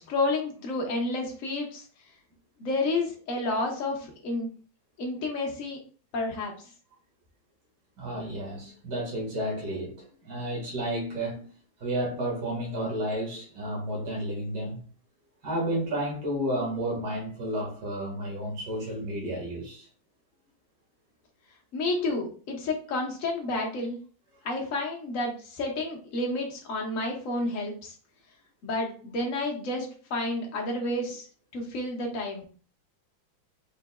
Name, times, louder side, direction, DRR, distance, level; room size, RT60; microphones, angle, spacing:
voice 1, 0.0-1.8 2.6-4.5 5.0-5.8 6.1-6.5 21.7-24.0 24.4-27.9 28.6-31.2 31.5-32.4, left 2 dB, 45° left, 1.4 m, -30 dB
voice 2, 8.0-11.5 11.8-14.8 15.4-19.9, right 1 dB, 50° right, 2.3 m, -31 dB
5.1 x 3.9 x 2.3 m
omnidirectional pair, 2.2 m